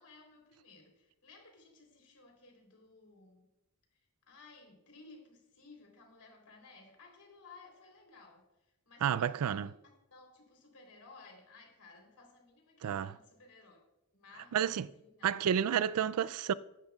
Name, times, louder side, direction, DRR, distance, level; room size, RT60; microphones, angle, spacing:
voice 1, 0.0-3.5 3.9-9.7 10.1-13.8 14.1-15.3, left 3 dB, 85° left, 3.6 m, -58 dB
voice 2, 9.0-9.7 12.8-13.1 14.5-14.9 15.2-16.5, right 8 dB, 75° right, 0.4 m, -30 dB
15.5 x 11.5 x 2.4 m
head